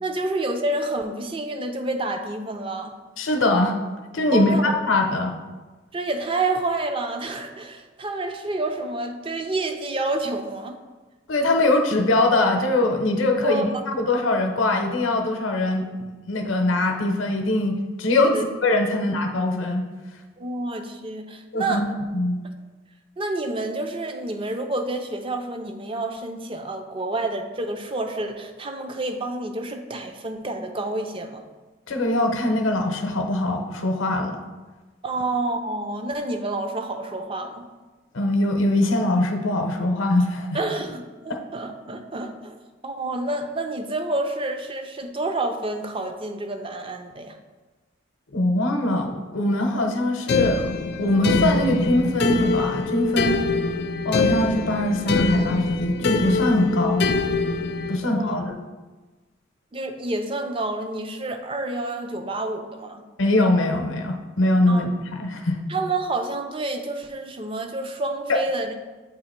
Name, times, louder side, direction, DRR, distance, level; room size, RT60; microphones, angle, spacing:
voice 1, 0.0-2.9 4.3-4.7 5.9-10.8 13.4-13.6 18.3-18.5 20.4-21.8 23.2-31.4 35.0-37.7 40.5-42.6 42.8-47.4 58.0-58.3 59.7-63.0 64.7-64.8 65.7-68.9, right 2 dB, 25° right, 5 dB, 0.4 m, -28 dB
voice 2, 3.2-3.8 4.1-5.3 11.3-15.9 16.3-18.4 18.6-19.9 21.5-21.9 22.1-22.4 31.9-34.4 38.1-40.6 41.3-41.4 48.3-50.7 51.0-53.4 54.0-57.1 57.9-58.5 63.2-64.9 65.2-65.7 68.3-68.4, left 2 dB, 75° left, 3 dB, 0.7 m, -22 dB
sound 1, 50.3-58.0, left 3 dB, 55° left, 0.3 m, -24 dB
8.0 x 2.9 x 4.3 m, 1.3 s
head